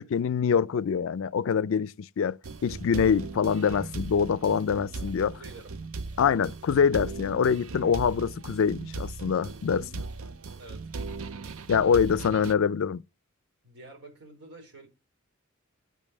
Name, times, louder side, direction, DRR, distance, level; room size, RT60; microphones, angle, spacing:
voice 1, 0.0-5.3 6.2-10.0 11.7-13.0, left 6 dB, 70° left, 0.4 m, -25 dB
sound 1, 2.4-12.5, right 3 dB, 75° right, 0.6 m, -38 dB
voice 2, 5.3-5.8 10.6-10.9 13.6-14.9, right 2 dB, 60° right, 4.2 m, -48 dB
9.1 x 5.4 x 6.3 m
head